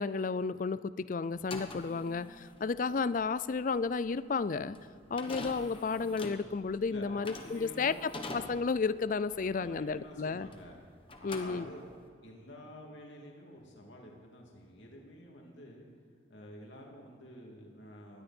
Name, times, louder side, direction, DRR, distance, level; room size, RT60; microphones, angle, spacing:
voice 1, 0.0-4.8 5.1-10.5 11.2-11.7, left 4 dB, 45° left, 16 dB, 0.4 m, -32 dB
sound 1, 1.3-10.8 11.1-12.1, left 2 dB, 30° left, 1.2 m, -45 dB
voice 2, 6.9-8.1 9.3-11.8 12.2-15.9 16.3-18.2, equal, 75° left, -1 dB, 2.8 m, -50 dB
20.0 x 13.0 x 4.4 m, 2.2 s
head